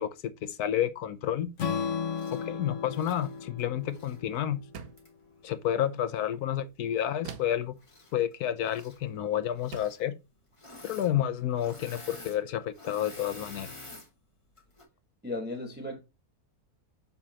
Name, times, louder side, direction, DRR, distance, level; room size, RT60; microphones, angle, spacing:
voice 1, 0.0-1.5 2.3-4.6 5.4-7.7 8.1-10.2 10.8-13.7, left 11 dB, 75° left, 1.3 m, -30 dB
Strum, 1.6-5.8, left 6 dB, 55° left, 1.4 m, -36 dB
Engine / Mechanisms, 2.1-2.4 2.9-4.2 5.0-5.1 7.8-8.3 8.6-9.0 9.5-10.0 10.5-11.1 11.4-14.1 14.6-14.8, left 2 dB, 20° left, 1.5 m, -48 dB
sound 1, 4.7-5.2 7.2-7.7 9.0-9.2 9.7-10.1, right 7 dB, 70° right, 1.3 m, -44 dB
voice 2, 15.2-16.0, left 2 dB, 10° right, 1.0 m, -35 dB
7.1 x 5.4 x 2.8 m
omnidirectional pair, 1.6 m